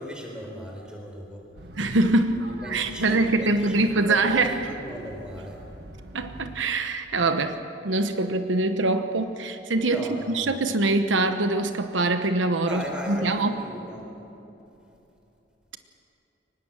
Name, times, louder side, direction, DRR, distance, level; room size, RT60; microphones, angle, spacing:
voice 1, 0.0-1.4 2.3-5.6 9.9-10.5 12.6-14.1, equal, 5° right, 1 dB, 4.0 m, -37 dB
sound 1, 1.6-6.7, right 1 dB, 55° right, 1.4 m, -45 dB
voice 2, 1.8-4.7 6.1-13.6, right 2 dB, 80° right, 8 dB, 1.0 m, -24 dB
23.5 x 20.0 x 7.3 m, 3.0 s
head